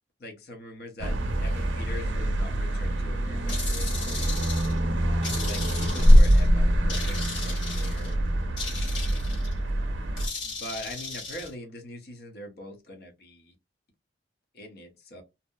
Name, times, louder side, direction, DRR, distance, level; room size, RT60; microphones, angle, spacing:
voice 1, 0.2-4.4 5.3-8.2 10.4-13.5 14.5-15.2, left 1 dB, 55° left, 0.7 m, -42 dB
sound 1, 1.0-10.3, equal, 85° right, 0.6 m, -24 dB
sound 2, 3.5-4.8 5.2-6.5 6.9-8.1 8.6-9.5 10.2-11.5, left 4 dB, 85° left, 1.1 m, -36 dB
2.7 x 2.0 x 2.2 m
head